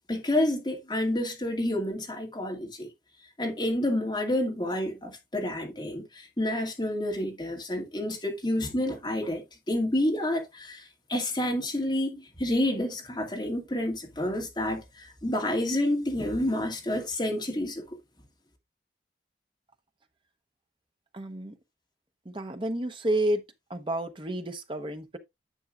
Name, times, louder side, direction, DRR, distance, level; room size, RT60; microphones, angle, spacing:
voice 1, 0.1-2.9 3.4-17.8, left 1 dB, 25° left, 2.2 m, -29 dB
voice 2, 21.1-21.6 22.3-23.4 23.7-25.2, right 1 dB, 30° right, 0.9 m, -30 dB
10.0 x 7.0 x 2.4 m
head